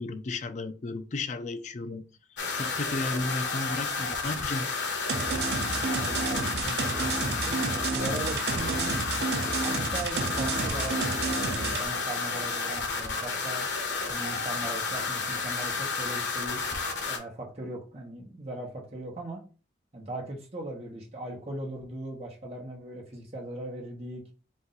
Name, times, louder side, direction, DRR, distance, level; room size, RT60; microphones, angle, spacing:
voice 1, 0.0-2.0 2.5-4.8, left 2 dB, 40° left, 0.4 m, -34 dB
sound 1, 2.4-17.2, left 4 dB, 75° left, 1.1 m, -31 dB
sound 2, 5.1-11.9, right 4 dB, 65° right, 0.7 m, -30 dB
voice 2, 5.9-7.6 7.9-9.0 9.6-13.7 14.1-16.6 17.1-19.4 19.9-24.2, right 1 dB, 35° right, 1.0 m, -39 dB
4.1 x 2.6 x 4.0 m
head